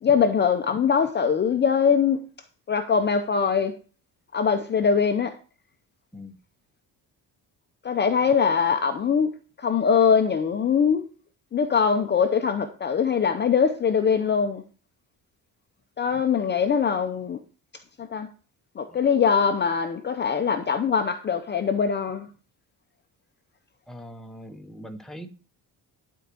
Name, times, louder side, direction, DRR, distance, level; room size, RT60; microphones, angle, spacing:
voice 1, 0.0-2.2 2.7-3.7 4.3-5.4 7.8-9.3 9.6-11.0 11.5-14.6 16.0-17.4 18.0-18.3 18.8-22.3, left 6 dB, 30° left, 0.6 m, -22 dB
voice 2, 23.9-25.3, equal, ahead, 0.9 m, -41 dB
11.0 x 4.6 x 6.8 m
cardioid pair, 165°, 37 cm